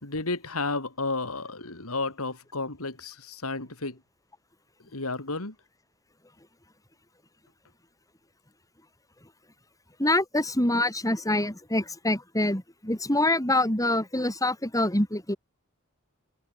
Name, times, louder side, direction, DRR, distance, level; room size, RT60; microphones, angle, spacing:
voice 1, 0.0-4.0 4.9-5.5, left 3 dB, 80° left, 3.5 m, -32 dB
voice 2, 10.0-15.4, left 1 dB, 15° left, 6.7 m, -25 dB
head